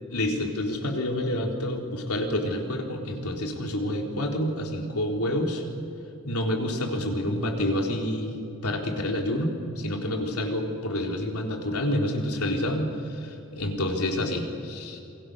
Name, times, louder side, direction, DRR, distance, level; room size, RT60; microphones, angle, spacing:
voice 1, 0.1-5.6 6.2-8.3 8.6-15.0, left 1 dB, 85° left, 1 dB, 3.9 m, -28 dB
28.5 x 22.5 x 6.5 m, 2.6 s
head